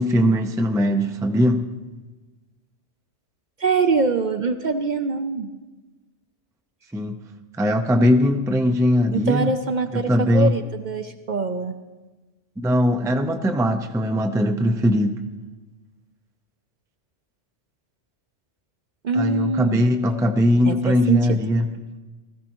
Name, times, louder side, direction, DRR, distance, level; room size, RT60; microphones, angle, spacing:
voice 1, 0.0-1.7 6.9-7.2 7.6-9.5 9.9-10.5 12.6-15.2 19.1-21.7, left 1 dB, 5° right, 5 dB, 0.4 m, -20 dB
voice 2, 3.6-5.5 9.1-11.7 19.0-19.8 20.7-21.4, right 4 dB, 55° right, 7 dB, 0.6 m, -23 dB
18.0 x 14.5 x 3.0 m, 1.2 s
omnidirectional pair, 1.2 m